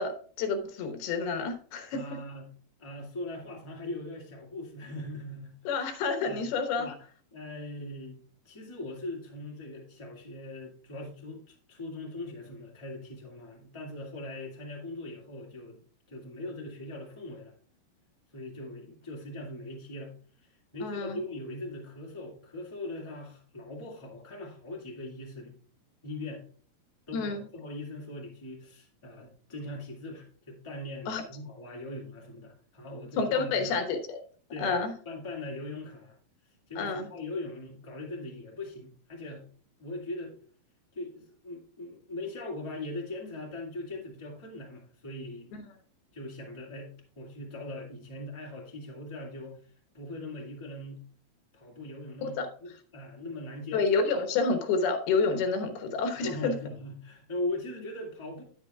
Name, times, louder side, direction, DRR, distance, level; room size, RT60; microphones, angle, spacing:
voice 1, 0.0-2.0 5.6-6.9 20.8-21.2 27.1-27.4 31.1-31.2 33.2-34.2 34.6-34.9 36.8-37.1 45.5-45.6 52.2-52.5 53.7-56.5, left 4 dB, 90° left, 3.2 m, -29 dB
voice 2, 1.9-2.5 2.8-5.5 6.2-6.5 6.8-6.9 7.3-8.2 8.4-15.8 16.1-17.5 18.3-25.6 26.0-26.4 27.1-33.7 34.5-36.2 36.4-39.5 39.8-40.4 40.9-45.5 46.1-51.0 51.5-53.9 56.1-58.4, left 2 dB, 15° left, 1.1 m, -40 dB
9.8 x 9.5 x 2.3 m
omnidirectional pair, 4.3 m